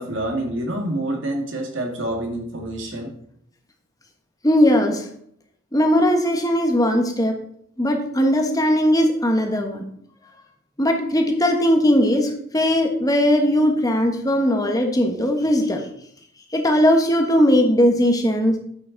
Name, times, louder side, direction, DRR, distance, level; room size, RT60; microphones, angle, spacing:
voice 1, 0.0-3.1, right 1 dB, 60° right, 2 dB, 2.0 m, -27 dB
voice 2, 4.4-5.1 5.7-7.4 7.8-9.8 10.8-15.8 16.5-18.5, equal, 15° left, 3 dB, 1.2 m, -19 dB
9.8 x 7.8 x 4.0 m, 0.67 s
head